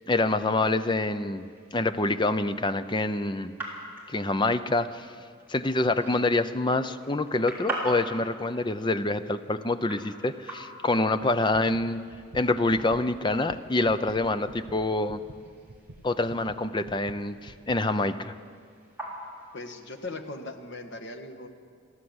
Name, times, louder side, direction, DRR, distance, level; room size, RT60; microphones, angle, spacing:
voice 1, 0.1-1.5 1.7-3.5 4.1-5.1 5.5-12.0 12.3-15.2 16.0-18.3, left 2 dB, 20° left, 11 dB, 0.6 m, -26 dB
sound 1, 0.6-20.2, right 1 dB, 10° right, 3.9 m, -44 dB
sound 2, 12.1-17.8, right 1 dB, 70° right, 1.0 m, -48 dB
voice 2, 19.5-21.5, left 2 dB, 60° left, 6 dB, 1.5 m, -39 dB
29.0 x 11.5 x 8.0 m, 2.2 s
head